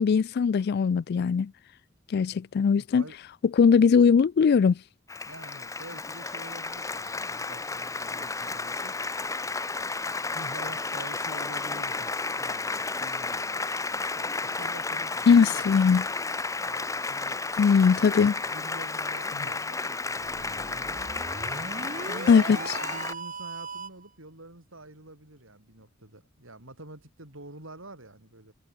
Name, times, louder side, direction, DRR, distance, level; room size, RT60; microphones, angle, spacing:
voice 1, 0.0-1.5 2.1-3.0 3.6-4.8 15.3-16.0 17.6-18.3 22.3-22.6, left 6 dB, 50° left, 0.3 m, -20 dB
voice 2, 2.7-3.2 5.3-9.0 10.3-13.6 14.2-15.7 16.6-17.4 17.9-20.9 21.9-28.5, right 1 dB, 75° right, 7.1 m, -47 dB
Applause, 5.1-23.1, left 3 dB, 15° left, 0.9 m, -32 dB
sound 1, 20.2-24.1, right 4 dB, 40° right, 3.8 m, -38 dB
head